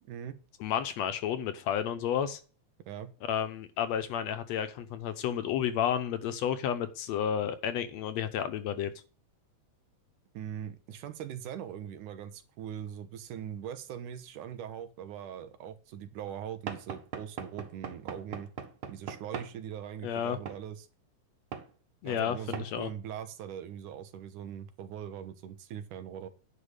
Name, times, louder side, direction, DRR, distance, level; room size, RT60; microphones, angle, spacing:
voice 1, 0.0-0.4 2.9-3.1 10.3-18.5 18.9-20.9 22.0-26.3, right 9 dB, 90° right, 10 dB, 2.6 m, -41 dB
voice 2, 0.6-2.4 3.3-8.9 20.0-20.4 22.0-22.9, left 9 dB, 70° left, 11 dB, 1.8 m, -31 dB
Knock / Wood, 16.7-19.6 20.5-20.6 21.5-21.7 22.5-22.7, right 7 dB, 55° right, 1.7 m, -40 dB
10.5 x 5.2 x 6.5 m, 0.37 s
omnidirectional pair, 3.5 m